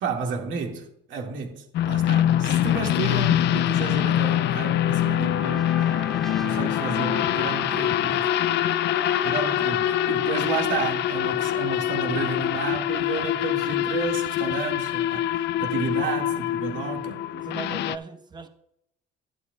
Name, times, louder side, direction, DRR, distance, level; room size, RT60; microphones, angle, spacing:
voice 1, 0.0-5.8 6.4-8.3 9.2-17.2, right 5 dB, 70° right, 2.0 m, -32 dB
sound 1, 1.7-18.0, left 12 dB, 55° left, 0.4 m, -24 dB
Trumpet, 4.8-10.5, left 2 dB, ahead, 0.8 m, -39 dB
voice 2, 17.3-18.5, right 4 dB, 20° right, 1.0 m, -37 dB
11.5 x 11.5 x 2.4 m
cardioid pair, 125°, 21 cm